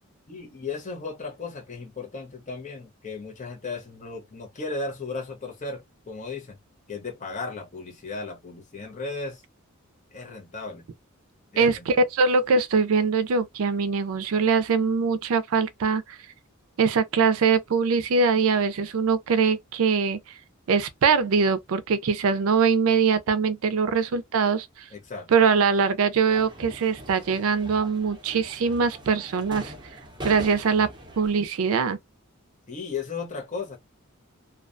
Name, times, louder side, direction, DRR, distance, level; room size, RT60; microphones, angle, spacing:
voice 1, 0.3-6.6 6.9-9.4 10.1-10.9 11.5-12.1 24.9-25.3 32.7-33.8, left 4 dB, 35° left, 0.7 m, -35 dB
voice 2, 11.6-16.2 16.8-20.2 20.7-24.7 25.3-29.7 30.2-30.9 31.2-32.0, right 5 dB, 75° right, 0.4 m, -22 dB
sound 1, 26.3-31.4, equal, 20° right, 0.7 m, -41 dB
2.3 x 2.2 x 2.4 m
head